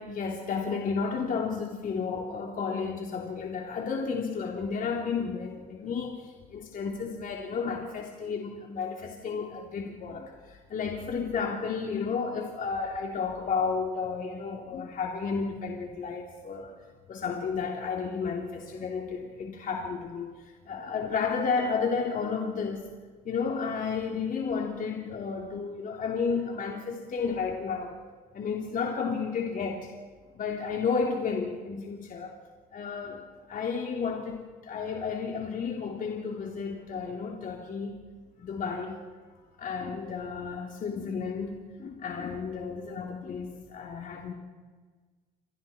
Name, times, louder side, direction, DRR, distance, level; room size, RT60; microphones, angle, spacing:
voice 1, 0.0-16.7 17.1-20.3 20.7-22.9 23.3-28.0 28.3-29.9 30.3-32.3 32.7-38.0 38.4-39.0 39.6-44.3, left 5 dB, 50° left, 0 dB, 3.5 m, -32 dB
28.5 x 25.5 x 4.5 m, 1.4 s
supercardioid pair, 75°, 18 cm